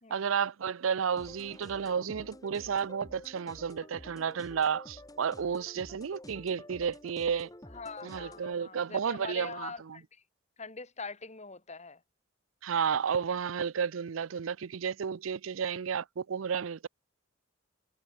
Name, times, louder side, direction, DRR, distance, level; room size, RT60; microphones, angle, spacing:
voice 1, 0.1-7.5 8.0-10.0 12.6-16.9, right 7 dB, 90° right, 0.5 m, -32 dB
sound 1, 1.2-8.5, left 1 dB, 20° left, 2.8 m, -50 dB
voice 2, 7.7-10.2 10.6-12.0, left 4 dB, 35° left, 3.0 m, -43 dB
head